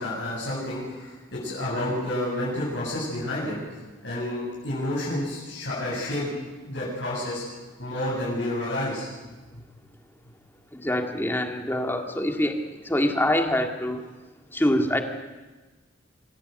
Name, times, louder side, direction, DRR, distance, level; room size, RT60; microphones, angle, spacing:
voice 1, 0.0-6.3 6.6-7.4 7.8-9.1 9.5-9.6, left 1 dB, 70° left, -7 dB, 7.8 m, -30 dB
voice 2, 10.7-12.6 12.8-14.1 14.5-15.0, left 1 dB, 10° left, 4 dB, 2.0 m, -25 dB
26.0 x 16.0 x 8.0 m, 1.2 s
head